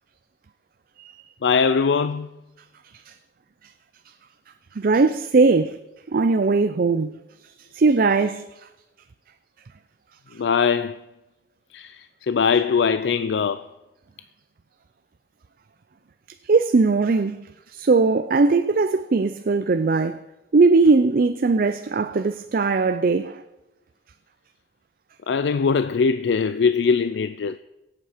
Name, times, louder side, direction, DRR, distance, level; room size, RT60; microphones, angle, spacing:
voice 1, 1.4-2.3 10.4-11.0 11.7-13.6 25.3-27.6, left 5 dB, 80° left, 0.4 m, -21 dB
voice 2, 4.7-5.8 6.1-7.2 7.6-8.5 16.4-20.2 20.5-23.4, right 4 dB, 55° right, 0.5 m, -19 dB
24.0 x 8.2 x 5.1 m
head